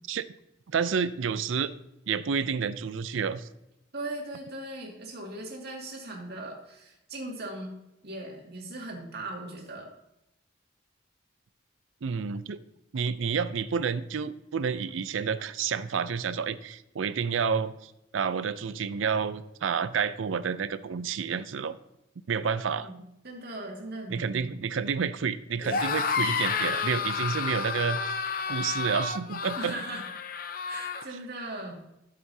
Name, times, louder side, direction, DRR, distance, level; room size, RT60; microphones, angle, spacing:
voice 1, 0.7-1.7 2.1-3.5 12.0-12.6 12.9-21.8 22.3-22.9 24.1-28.2 28.5-29.8, right 6 dB, 85° right, 14 dB, 0.5 m, -29 dB
voice 2, 3.9-7.7 8.0-9.9 22.8-24.5 29.6-30.1 30.7-31.8, right 2 dB, 55° right, -1 dB, 2.2 m, -39 dB
sound 1, 25.6-31.0, left 5 dB, 50° left, 0.7 m, -30 dB
12.0 x 7.6 x 2.8 m, 0.88 s
head